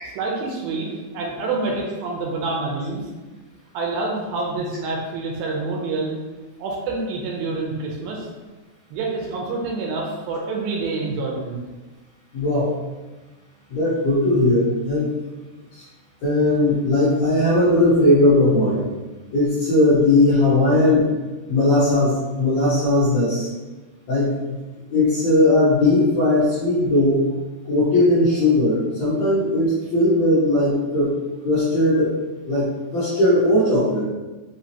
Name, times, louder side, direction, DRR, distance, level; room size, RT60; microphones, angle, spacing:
voice 1, 0.2-3.0 3.7-6.1 6.6-8.3 8.9-11.6, right 3 dB, 80° right, -1 dB, 2.3 m, -27 dB
voice 2, 12.3-12.7 13.7-15.1 15.7-15.8 16.2-18.9 19.3-21.1 21.5-23.5 24.1-24.6 24.9-27.3 27.7-31.1 31.4-32.1 32.4-34.0, left 1 dB, 65° left, -10 dB, 1.8 m, -18 dB
6.2 x 2.8 x 2.9 m, 1.2 s
omnidirectional pair, 4.6 m